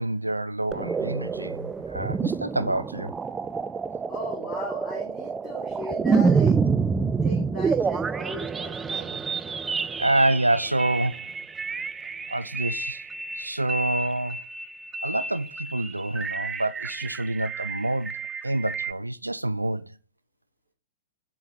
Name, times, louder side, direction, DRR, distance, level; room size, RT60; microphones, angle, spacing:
voice 1, 0.0-3.1 10.0-11.3 12.3-13.0 13.3-14.4 15.0-18.2 18.4-20.0, right 1 dB, 90° right, 0.4 m, -27 dB
sound 1, 0.7-18.9, right 5 dB, 15° right, 0.4 m, -28 dB
voice 2, 4.1-6.6 7.2-9.2, equal, 15° left, 4.4 m, -37 dB
7.6 x 3.6 x 4.8 m
figure-of-eight pair, 110°, 0 cm